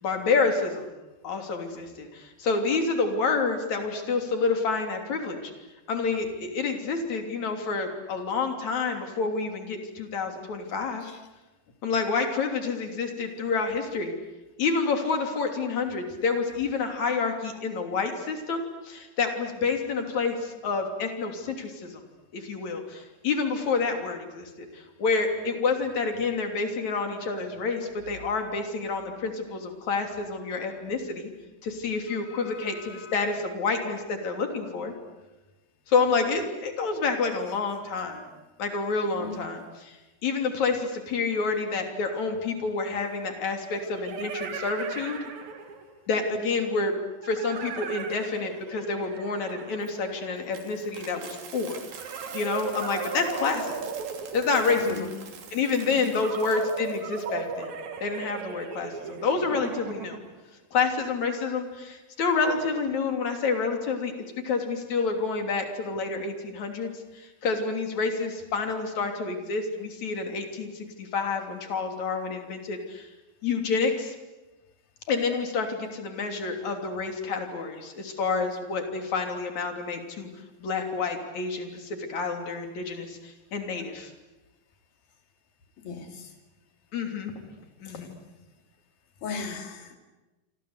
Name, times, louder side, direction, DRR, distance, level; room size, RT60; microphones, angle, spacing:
voice 1, 0.0-0.9 1.2-5.5 5.9-11.1 11.8-14.1 14.6-22.0 22.3-31.3 31.6-34.9 35.9-38.2 38.6-40.0 40.2-45.2 46.1-46.9 47.2-51.8 52.3-53.8 54.3-55.1 55.5-57.7 58.0-60.2 60.7-64.1 64.4-73.1 73.4-74.1 75.1-80.3 80.6-84.1 86.9-87.3 87.8-88.1, left 4 dB, 55° left, 4 dB, 4.3 m, -28 dB
voice 2, 32.1-33.3 39.2-39.5 54.8-55.2 55.9-56.3 85.8-86.3 87.8-88.1 89.2-90.0, left 4 dB, 80° left, 5 dB, 4.6 m, -39 dB
sound 1, 42.1-42.2 43.6-46.0 47.2-50.7 51.9-55.0 56.1-60.4, right 5 dB, 55° right, 3.2 m, -37 dB
Coin (dropping), 49.8-57.3, right 6 dB, 80° right, 4.7 m, -45 dB
28.0 x 26.0 x 8.1 m, 1.1 s
omnidirectional pair, 4.1 m